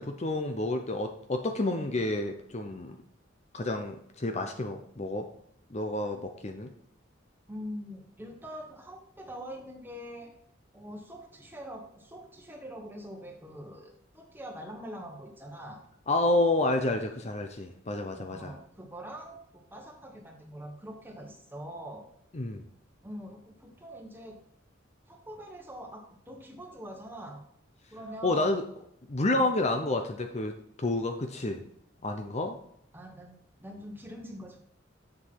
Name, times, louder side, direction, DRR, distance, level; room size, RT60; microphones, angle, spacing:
voice 1, 0.0-3.0 3.5-5.3 5.7-6.7 16.1-18.5 22.3-22.6 28.2-28.6 29.1-31.6 32.0-32.6, left 2 dB, 35° left, 5 dB, 0.7 m, -29 dB
voice 2, 7.5-10.3 10.7-15.8 18.1-22.1 23.0-24.4 25.1-27.4 27.9-28.5 32.9-34.6, equal, 10° right, 2 dB, 1.5 m, -44 dB
7.7 x 7.0 x 4.7 m, 0.71 s
head